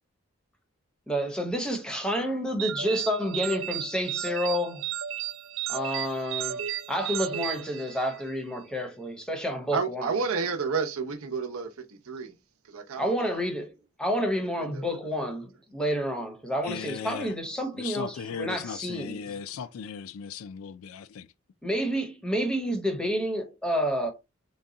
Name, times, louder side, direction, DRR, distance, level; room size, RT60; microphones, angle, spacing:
voice 1, 1.1-4.8 5.7-6.6 6.9-10.1 13.0-13.7 14.0-19.4 21.6-24.1, equal, 5° left, 0.7 m, -29 dB
sound 1, 2.6-8.4, right 11 dB, 65° right, 0.4 m, -34 dB
voice 2, 9.7-12.4 12.6-13.4 14.4-15.0, right 5 dB, 85° right, 0.8 m, -31 dB
voice 3, 16.6-17.3 17.7-21.3, left 7 dB, 80° left, 0.4 m, -37 dB
4.0 x 2.2 x 3.7 m
head